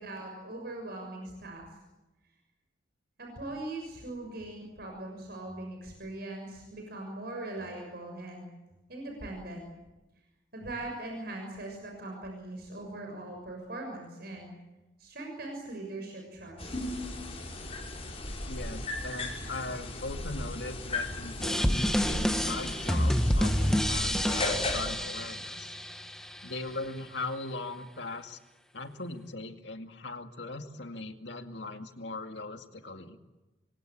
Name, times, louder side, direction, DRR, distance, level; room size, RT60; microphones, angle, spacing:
voice 1, 0.0-1.6 3.2-8.5 8.9-9.7 10.5-14.5 15.0-16.7, right 2 dB, 55° right, 1 dB, 6.6 m, -40 dB
sound 1, 16.6-24.9, left 2 dB, 35° left, 5.4 m, -37 dB
voice 2, 18.5-25.7 26.4-28.4 28.7-33.2, left 2 dB, 70° left, 6 dB, 2.2 m, -39 dB
sound 2, 21.4-26.4, equal, 5° left, 1.3 m, -28 dB
27.5 x 23.0 x 8.9 m, 1.1 s
head